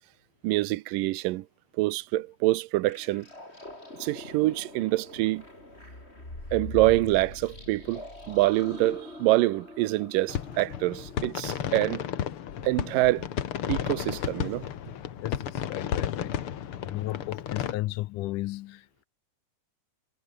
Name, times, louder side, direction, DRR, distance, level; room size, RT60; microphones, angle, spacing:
voice 1, 0.4-1.5 1.8-3.3 4.0-5.4 6.5-12.0 12.6-13.3 13.7-14.7, right 19 dB, 90° right, 2.4 m, -26 dB
sound 1, 2.9-11.4, left 1 dB, 15° left, 6.7 m, -42 dB
sound 2, 10.3-17.7, left 9 dB, 55° left, 1.8 m, -33 dB
voice 2, 15.2-16.4 16.8-19.0, left 18 dB, 80° left, 2.1 m, -34 dB
omnidirectional pair, 3.8 m